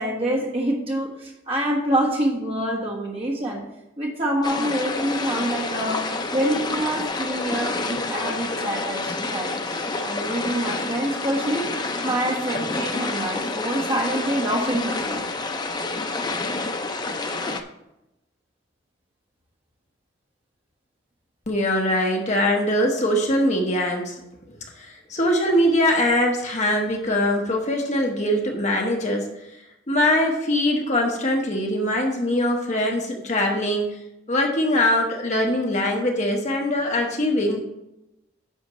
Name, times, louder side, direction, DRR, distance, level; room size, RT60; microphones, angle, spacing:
voice 1, 0.0-3.6 4.0-11.7 12.0-15.2, right 1 dB, 30° right, -2 dB, 1.5 m, -26 dB
sound 1, 4.4-17.6, left 3 dB, 20° left, 0.5 m, -28 dB
voice 2, 21.5-24.2 24.5-29.2 29.9-34.0 34.3-37.6, left 1 dB, 40° left, 1 dB, 1.2 m, -22 dB
10.0 x 6.4 x 3.1 m, 0.89 s
head